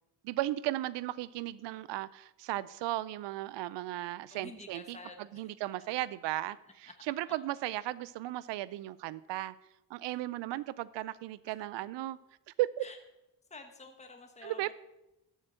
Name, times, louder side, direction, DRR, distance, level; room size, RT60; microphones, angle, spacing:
voice 1, 0.2-5.0 5.3-9.5 9.9-12.2 12.6-12.8 14.4-14.7, right 16 dB, 90° right, 18 dB, 0.5 m, -35 dB
voice 2, 4.3-5.7 6.6-6.9 7.2-7.3 10.1-10.2 12.8-13.0 13.5-14.7, left 3 dB, 15° left, 5 dB, 1.3 m, -50 dB
13.0 x 4.4 x 7.7 m, 0.92 s
cardioid pair, 80°, 41 cm